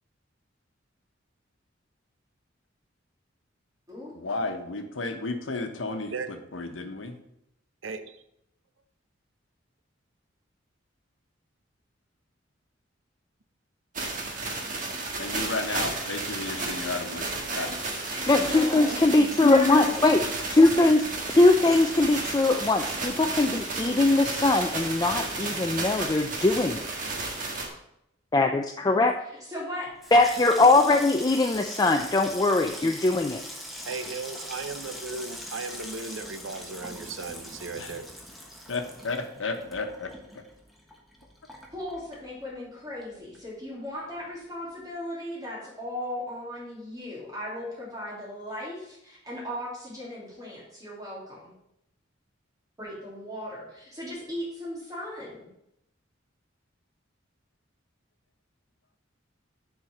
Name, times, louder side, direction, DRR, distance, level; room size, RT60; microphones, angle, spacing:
voice 1, 4.1-7.2 15.2-17.8 37.8-37.9 38.7-40.4, left 3 dB, 90° left, 6 dB, 1.1 m, -33 dB
voice 2, 7.8-8.2 33.8-38.1, right 4 dB, 90° right, 10 dB, 0.7 m, -36 dB
sound 1, 13.9-27.7, right 3 dB, 45° right, 1.6 m, -33 dB
voice 3, 17.5-20.4 29.5-29.9 41.7-51.5 52.8-55.5, left 1 dB, 20° right, -6 dB, 3.0 m, -37 dB
voice 4, 18.3-20.2 20.5-26.8 28.3-29.1 30.1-33.4, left 2 dB, 20° left, 4 dB, 0.4 m, -21 dB
Water tap faucet / Sink (filling or washing), 29.9-42.7 43.0-43.7 43.9-44.3, equal, ahead, 1.2 m, -42 dB
7.3 x 4.7 x 6.2 m, 0.79 s
head